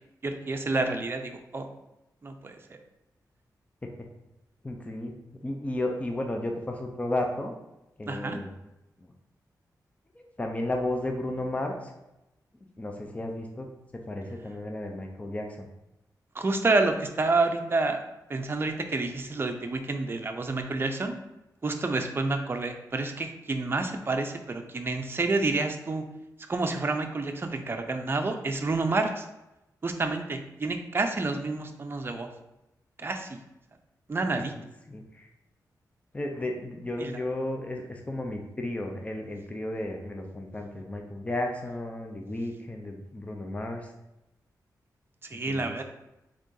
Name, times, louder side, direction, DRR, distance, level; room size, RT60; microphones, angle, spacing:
voice 1, 0.2-1.7 2.2-2.8 8.1-8.4 16.3-18.0 18.3-21.2 21.6-26.0 26.5-29.3 29.8-32.3 33.0-33.4 34.1-34.5 37.0-37.1 45.2-45.8, right 3 dB, 35° right, 5 dB, 0.6 m, -29 dB
voice 2, 4.6-5.1 5.4-7.5 8.0-8.5 9.0-9.1 10.1-11.9 12.8-13.7 14.1-15.7 34.9-35.3 36.1-43.9 45.3-45.8, left 1 dB, 20° left, 2 dB, 0.6 m, -33 dB
3.9 x 3.6 x 3.8 m, 0.93 s
cardioid pair, 85°, 7 cm